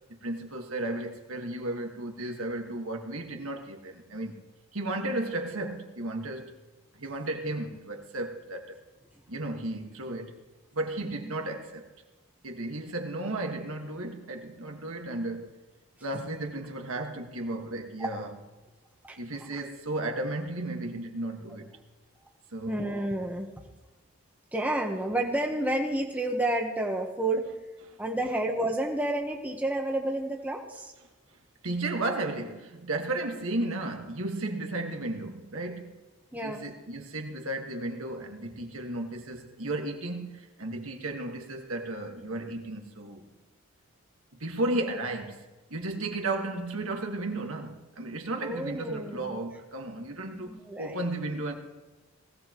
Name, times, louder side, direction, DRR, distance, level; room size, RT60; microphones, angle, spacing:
voice 1, 0.1-4.4 4.7-6.5 6.9-8.8 9.3-10.4 10.7-11.9 12.4-15.5 16.0-18.3 19.2-21.8 22.5-22.8 27.9-28.0 31.6-36.0 36.4-43.2 44.4-51.5, right 2 dB, 70° right, 1.7 m, -34 dB
voice 2, 22.7-23.5 24.5-27.5 28.0-30.9 36.3-36.6 44.8-44.9 48.4-49.4 50.5-51.0, right 1 dB, 5° right, 1.1 m, -30 dB
19.5 x 16.5 x 3.0 m
head